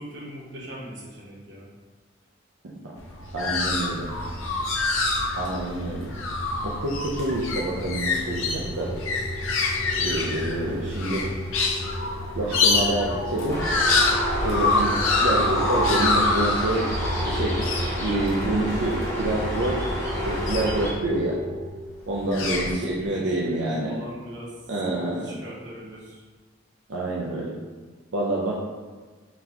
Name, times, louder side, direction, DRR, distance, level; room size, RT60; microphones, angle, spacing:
voice 1, 0.0-1.7 22.3-22.6 22.9-24.6 25.0-26.2, equal, 60° right, -5 dB, 1.1 m, -41 dB
voice 2, 2.6-3.0 3.3-4.1 5.4-6.1 6.6-9.0 10.0-11.3 12.4-13.7 14.4-17.6 18.0-19.8 20.2-21.4 22.1-23.9 24.7-25.4 26.9-27.5 28.1-28.5, right 1 dB, 75° right, -5 dB, 0.5 m, -27 dB
sound 1, 3.0-21.2 22.1-22.7, left 3 dB, 90° left, 0.6 m, -26 dB
sound 2, 5.3-21.7, right 1 dB, 40° right, 0.7 m, -35 dB
sound 3, 13.5-20.9, equal, 15° left, 0.7 m, -31 dB
3.8 x 3.5 x 2.9 m, 1.4 s
head